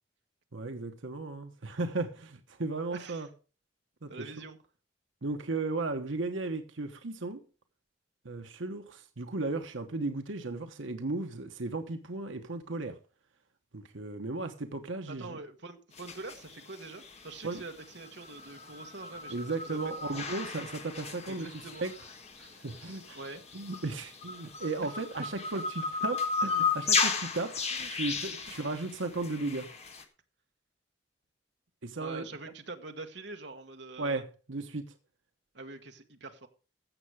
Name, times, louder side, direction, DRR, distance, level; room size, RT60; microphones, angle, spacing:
voice 1, 0.5-3.3 4.0-4.1 5.2-7.4 8.2-13.0 13.7-15.3 17.4-17.6 19.3-21.9 22.4-23.2 23.5-29.7 31.8-32.3 34.0-34.9, right 3 dB, 90° right, 1.1 m, -35 dB
voice 2, 2.9-3.3 4.1-4.6 15.1-19.9 21.3-21.8 23.1-23.4 27.7-28.2 31.9-34.2 35.5-36.5, right 3 dB, 65° right, 1.4 m, -45 dB
sound 1, 16.0-30.0, left 5 dB, 35° left, 1.4 m, -35 dB
15.5 x 6.8 x 4.8 m
head